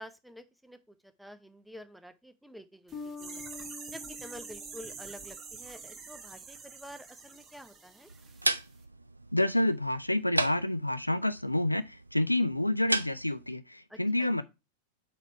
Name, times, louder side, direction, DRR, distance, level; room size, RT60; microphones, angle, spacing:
voice 1, 0.0-3.4 3.9-8.1 13.9-14.3, equal, ahead, 0.7 m, -49 dB
Bass guitar, 2.9-5.9, left 4 dB, 20° left, 1.6 m, -46 dB
sound 1, 2.9-8.5 8.8-8.9, right 5 dB, 25° right, 1.2 m, -46 dB
sound 2, 8.1-13.5, right 2 dB, 85° right, 0.4 m, -36 dB
voice 2, 9.3-14.4, left 1 dB, 85° left, 0.4 m, -28 dB
4.6 x 4.1 x 5.4 m
figure-of-eight pair, 90°, 0 cm